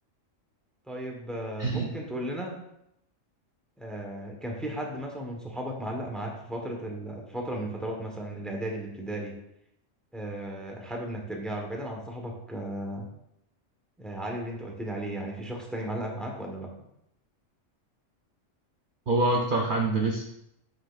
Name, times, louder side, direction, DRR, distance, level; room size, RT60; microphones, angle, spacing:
voice 1, 0.9-2.5 3.8-9.3 10.1-13.1 14.0-16.7, right 1 dB, ahead, 0 dB, 1.0 m, -35 dB
voice 2, 1.6-1.9 19.1-20.3, right 2 dB, 50° right, 0 dB, 0.7 m, -25 dB
7.7 x 6.3 x 2.4 m, 0.80 s
omnidirectional pair, 1.3 m